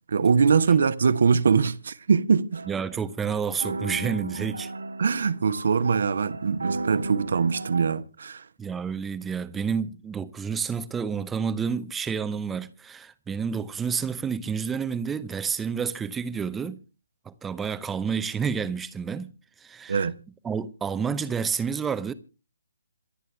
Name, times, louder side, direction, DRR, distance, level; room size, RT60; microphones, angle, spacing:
voice 1, 0.1-2.7 5.0-8.4 19.9-20.2, right 5 dB, 55° right, 1.1 m, -22 dB
sound 1, 2.5-8.0, right 3 dB, 70° right, 1.6 m, -35 dB
voice 2, 2.7-4.7 8.6-16.8 17.3-19.3 19.6-20.1 20.4-22.1, right 6 dB, 10° right, 0.7 m, -29 dB
27.0 x 9.1 x 3.4 m
figure-of-eight pair, 140°, 0 cm